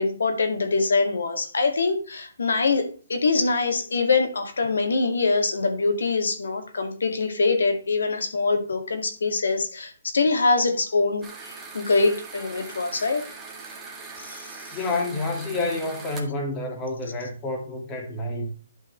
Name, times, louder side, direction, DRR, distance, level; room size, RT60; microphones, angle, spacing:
voice 1, 0.0-2.8 3.1-13.2 14.2-14.6, left 3 dB, 85° left, 2.1 m, -24 dB
sound 1, 11.2-16.2, right 4 dB, 10° right, 1.6 m, -41 dB
voice 2, 14.7-18.5, left 2 dB, 20° left, 2.1 m, -29 dB
11.0 x 5.7 x 3.2 m
hypercardioid pair, 160°, 0 cm